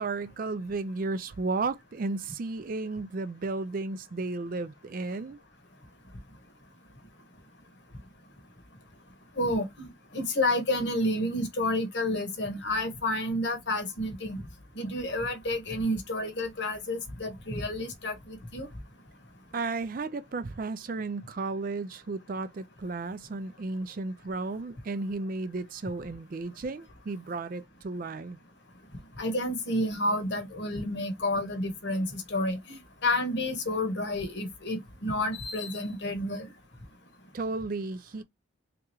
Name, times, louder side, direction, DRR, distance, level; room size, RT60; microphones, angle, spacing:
voice 1, 0.0-5.4 19.5-28.4 37.3-38.2, right 3 dB, 45° right, 0.4 m, -34 dB
voice 2, 9.4-9.9 10.1-14.4 14.7-18.7 29.2-36.5, left 1 dB, 55° left, 1.1 m, -30 dB
3.6 x 2.9 x 3.0 m
head